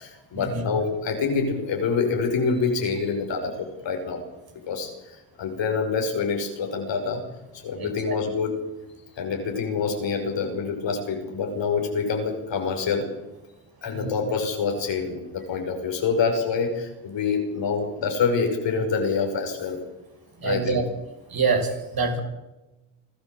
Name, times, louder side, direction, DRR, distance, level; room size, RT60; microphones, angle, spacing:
voice 1, 0.0-4.2 4.7-7.2 7.5-8.6 9.2-13.1 13.8-19.8 20.4-20.8, left 5 dB, 65° left, 3 dB, 5.7 m, -26 dB
voice 2, 7.8-8.2 13.9-14.1 20.4-20.8 21.3-22.2, right 4 dB, 50° right, 3 dB, 6.6 m, -26 dB
25.5 x 13.0 x 7.7 m, 1.0 s
supercardioid pair, 65°, 47 cm